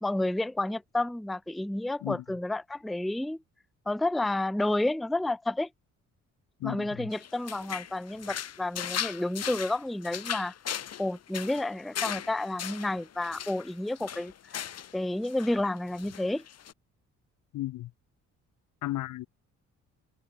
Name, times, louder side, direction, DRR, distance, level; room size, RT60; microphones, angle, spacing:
voice 1, 0.0-3.4 3.9-5.7 6.6-10.5 11.0-14.3 14.9-16.4, left 2 dB, ahead, 0.5 m, -30 dB
voice 2, 6.6-7.1 17.5-17.9 18.8-19.3, left 16 dB, 90° left, 3.6 m, -34 dB
sound 1, 7.1-15.0 15.2-15.6 16.0-16.7, left 9 dB, 55° left, 2.3 m, -38 dB
cardioid pair, 90°, 30 cm